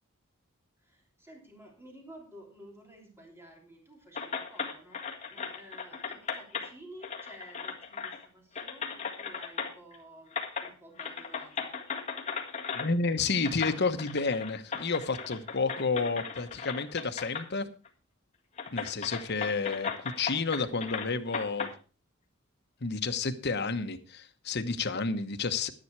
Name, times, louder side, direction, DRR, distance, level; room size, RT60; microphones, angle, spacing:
voice 1, 0.8-10.3 10.6-11.7, right 1 dB, 10° right, 3.2 m, -52 dB
sound 1, 4.1-6.7 7.0-8.2 8.6-10.0 10.3-10.7 11.0-12.9 13.4-17.5 17.8-17.9 18.6-21.7, left 6 dB, 35° left, 1.8 m, -37 dB
voice 2, 12.7-17.7 18.7-21.7 22.8-25.7, left 4 dB, 55° left, 1.1 m, -30 dB
11.0 x 10.5 x 4.7 m
head